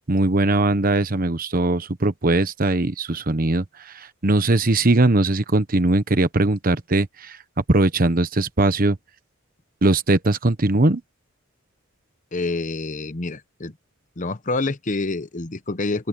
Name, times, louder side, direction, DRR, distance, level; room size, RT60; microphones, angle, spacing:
voice 1, 0.1-7.4 7.7-9.0 9.8-11.0, right 2 dB, 40° right, 1.1 m, -20 dB
voice 2, 12.3-13.8 14.2-16.1, left 3 dB, 35° left, 0.9 m, -27 dB
open air
head